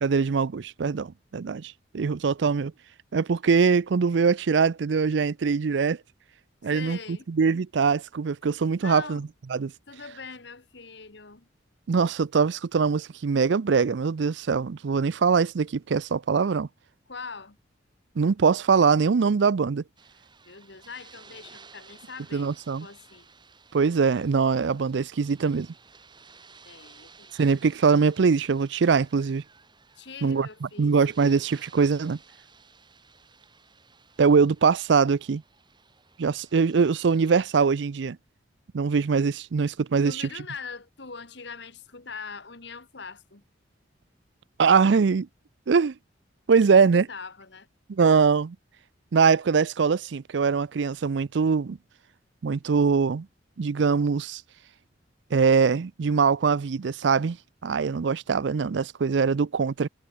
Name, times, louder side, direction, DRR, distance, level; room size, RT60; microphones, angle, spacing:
voice 1, 0.0-2.7 3.1-6.0 6.6-9.7 11.9-16.7 18.2-19.8 22.3-22.9 23.7-25.7 27.4-29.4 30.2-32.2 34.2-35.4 36.2-38.2 38.7-40.3 44.6-45.3 45.7-45.9 46.5-47.1 47.9-48.6 49.1-51.8 52.4-53.3 53.6-54.4 55.3-57.4 57.6-59.9, right 5 dB, 65° right, 0.5 m, -22 dB
voice 2, 6.7-7.3 8.8-9.3 9.9-11.5 17.1-17.6 20.5-22.5 22.8-23.3 26.6-27.3 30.0-31.1 40.0-43.4 46.9-47.7, left 5 dB, 65° left, 1.9 m, -42 dB
sound 1, 20.0-37.5, right 5 dB, 25° right, 2.8 m, -55 dB
head